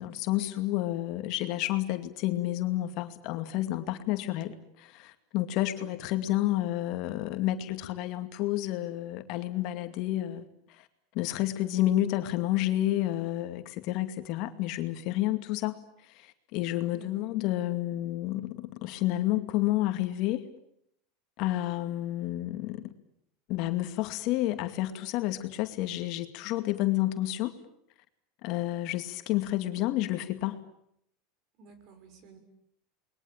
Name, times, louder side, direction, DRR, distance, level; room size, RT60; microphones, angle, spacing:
voice 1, 0.0-10.4 10.8-10.9 11.1-20.4 21.4-22.9 23.5-27.6 28.4-30.6, left 15 dB, 55° left, 8 dB, 2.3 m, -30 dB
voice 2, 16.9-17.3 31.6-32.4, right 3 dB, 45° right, 9 dB, 6.1 m, -54 dB
28.5 x 22.0 x 8.9 m, 0.73 s
supercardioid pair, 135°, 0 cm